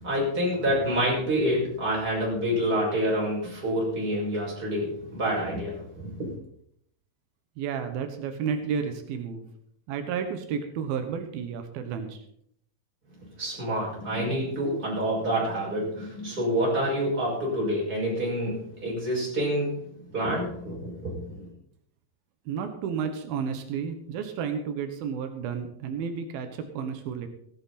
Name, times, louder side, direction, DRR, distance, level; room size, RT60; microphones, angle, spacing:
voice 1, 0.0-6.3 13.4-19.8 20.1-21.5, equal, 25° right, -4 dB, 6.3 m, -27 dB
voice 2, 7.6-9.5 9.9-12.2 22.5-27.3, right 7 dB, 90° right, 6 dB, 3.0 m, -32 dB
16.0 x 12.0 x 4.2 m, 0.67 s
omnidirectional pair, 4.1 m